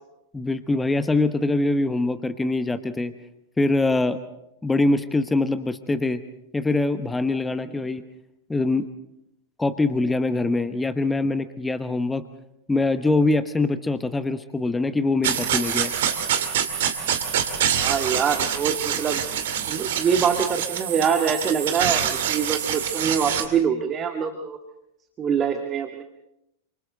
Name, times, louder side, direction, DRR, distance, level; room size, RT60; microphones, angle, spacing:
voice 1, 0.3-3.1 3.6-4.2 4.6-6.2 6.5-8.0 8.5-8.9 9.6-12.2 12.7-15.9, left 2 dB, 10° left, 11 dB, 1.1 m, -23 dB
sound 1, 15.2-23.5, right 9 dB, 55° right, 2.4 m, -25 dB
voice 2, 17.8-24.6 25.2-26.0, right 7 dB, 25° right, 5 dB, 1.8 m, -24 dB
29.0 x 26.5 x 3.9 m, 0.82 s
figure-of-eight pair, 90°, 0 cm